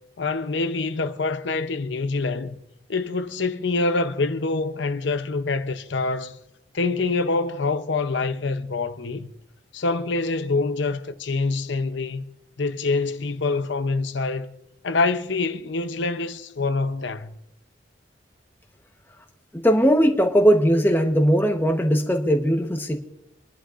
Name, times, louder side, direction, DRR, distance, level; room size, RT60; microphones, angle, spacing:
voice 1, 0.2-2.6 2.9-6.4 6.7-9.3 9.7-12.3 12.6-14.5 14.8-17.4, left 3 dB, 75° left, 0.7 m, -25 dB
voice 2, 19.5-23.0, equal, 10° left, 1.0 m, -19 dB
26.0 x 11.0 x 2.5 m
head